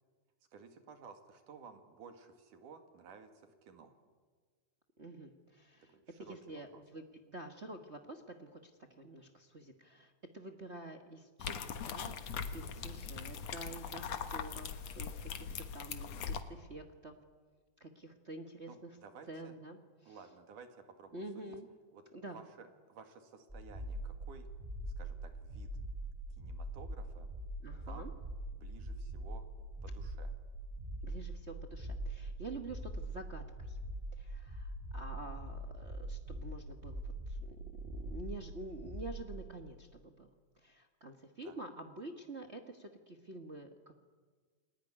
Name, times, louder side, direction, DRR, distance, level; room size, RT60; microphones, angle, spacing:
voice 1, 0.5-4.0 5.9-6.8 12.6-12.9 18.7-19.6 20.1-21.6 21.9-22.0 22.3-24.5 24.9-25.7 26.3-27.3 27.9-28.1 28.5-29.5 29.8-30.3 41.4-41.6, right 5 dB, 80° right, 7 dB, 3.6 m, -55 dB
voice 2, 5.0-16.2 16.5-17.2 17.8-18.9 19.3-20.2 21.1-21.7 22.1-22.4 27.6-28.1 31.0-33.8 34.2-40.3 40.6-43.7, right 2 dB, 45° right, 5 dB, 0.9 m, -48 dB
sound 1, 11.4-16.4, left 7 dB, 60° left, 2.4 m, -41 dB
sound 2, 23.5-39.3, right 1 dB, 10° right, 4.5 m, -43 dB
29.5 x 20.5 x 9.9 m, 1.5 s
omnidirectional pair, 3.6 m